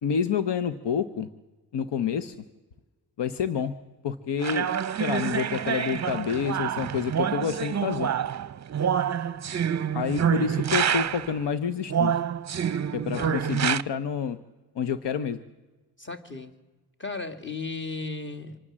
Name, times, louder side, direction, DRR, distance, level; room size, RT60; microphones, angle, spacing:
voice 1, 0.0-1.3 1.7-2.4 3.2-3.7 4.0-4.7 5.0-8.1 9.9-12.1 12.9-14.4 14.8-15.4, left 7 dB, 85° left, 12 dB, 1.0 m, -28 dB
sound 1, 4.4-11.4 11.9-13.8, right 8 dB, 40° right, 0.6 m, -27 dB
voice 2, 16.0-16.5 17.0-18.6, left 3 dB, 30° left, 6 dB, 2.4 m, -35 dB
26.0 x 19.5 x 7.5 m, 1.2 s
wide cardioid pair, 100°, 40 cm